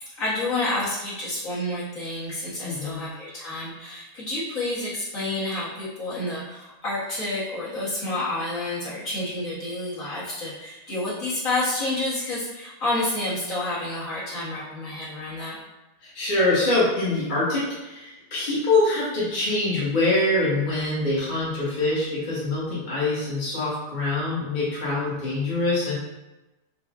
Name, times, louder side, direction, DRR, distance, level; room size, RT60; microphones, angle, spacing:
voice 1, 0.2-15.6, left 2 dB, 50° left, -10 dB, 1.8 m, -29 dB
voice 2, 2.6-3.0 16.0-26.0, left 2 dB, 30° left, -9 dB, 1.3 m, -24 dB
5.1 x 2.5 x 3.6 m, 1.0 s
omnidirectional pair, 2.0 m